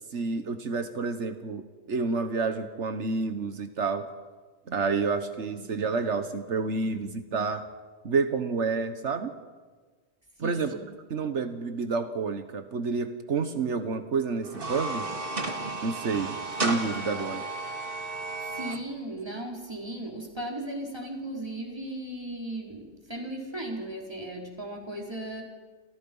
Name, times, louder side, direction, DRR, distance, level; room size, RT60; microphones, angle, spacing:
voice 1, 0.1-4.1 4.7-7.6 8.0-9.3 10.4-10.8 11.1-15.1 15.8-17.4, right 4 dB, 85° right, 8 dB, 1.7 m, -29 dB
voice 2, 10.4-10.9 18.4-25.4, right 1 dB, 20° right, -1 dB, 5.0 m, -36 dB
sound 1, 14.4-18.8, right 3 dB, 55° right, 2.2 m, -33 dB
30.0 x 27.0 x 5.6 m, 1.4 s
omnidirectional pair, 1.2 m